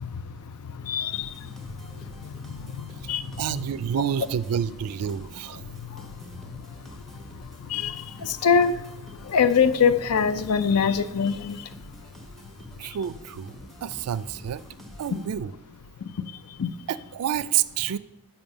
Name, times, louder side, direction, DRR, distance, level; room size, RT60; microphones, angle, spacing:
voice 1, 0.0-3.7 5.5-12.3 12.5-13.0 13.6-13.7 16.0-16.8, left 6 dB, 85° left, 0.5 m, -27 dB
sound 1, 1.1-15.7, right 1 dB, ahead, 1.0 m, -47 dB
voice 2, 3.4-5.6 12.8-13.5 13.8-14.6 15.0-15.5 16.9-18.0, right 9 dB, 80° right, 0.3 m, -28 dB
7.1 x 5.6 x 6.5 m
head